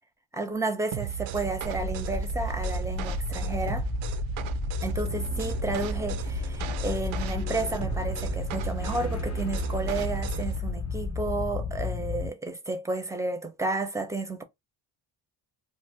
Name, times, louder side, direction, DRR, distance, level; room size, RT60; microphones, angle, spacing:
voice 1, 0.3-3.9 4.8-14.4, right 3 dB, 5° right, 0.7 m, -32 dB
sound 1, 0.9-10.6, right 12 dB, 70° right, 0.6 m, -35 dB
sound 2, 1.6-12.3, left 5 dB, 30° left, 0.7 m, -32 dB
2.6 x 2.1 x 3.3 m
cardioid pair, 75°, 50 cm